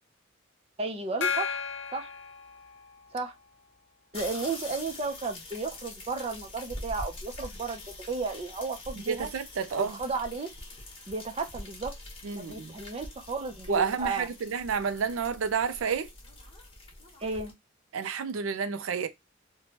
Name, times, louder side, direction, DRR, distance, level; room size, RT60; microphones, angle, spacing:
voice 1, 0.8-1.6 1.9-2.1 3.1-3.3 4.1-7.8 8.1-9.3 9.7-10.5 11.1-11.9 12.3-14.3 17.2-17.5, right 3 dB, 30° right, 0.5 m, -33 dB
Gong, 1.2-3.2, left 6 dB, 60° left, 0.6 m, -34 dB
sound 1, 4.1-17.5, left 2 dB, 30° left, 1.0 m, -44 dB
voice 2, 9.1-10.0 12.2-12.7 13.7-16.1 17.9-19.1, right 6 dB, 80° right, 0.4 m, -30 dB
3.0 x 2.2 x 2.8 m
head